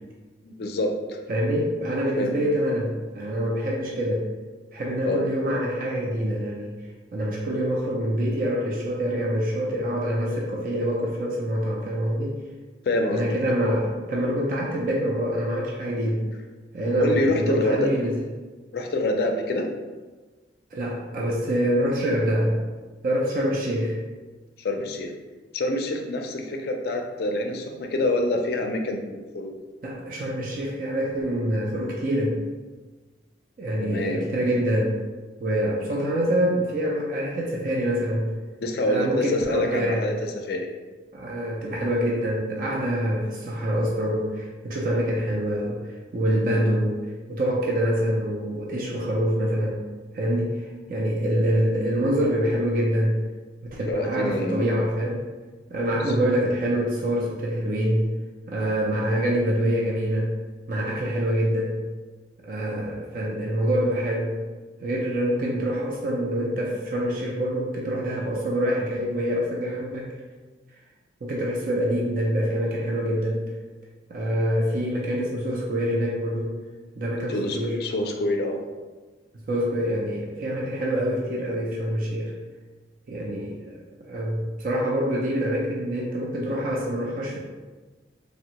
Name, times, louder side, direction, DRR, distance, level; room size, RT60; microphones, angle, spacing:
voice 1, 0.4-1.2 2.2-2.4 5.0-5.2 12.9-13.2 16.8-17.9 18.7-19.7 24.6-25.1 25.5-29.5 33.8-34.4 38.6-40.1 40.4-40.7 53.9-54.7 77.3-78.6, left 1 dB, 60° left, 3 dB, 0.4 m, -26 dB
voice 2, 1.3-4.2 4.7-6.7 7.1-12.4 13.1-16.2 16.7-18.1 20.7-22.6 23.0-24.0 29.8-32.4 33.6-35.0 35.4-38.3 38.8-40.1 41.1-49.8 50.1-53.2 53.6-55.3 55.7-58.1 58.5-60.3 60.7-61.8 62.4-64.3 64.8-70.1 71.2-73.4 74.1-76.5 77.0-77.8 79.5-82.3 83.1-87.4, equal, 50° right, -3 dB, 0.4 m, -25 dB
3.4 x 2.0 x 2.8 m, 1.3 s
head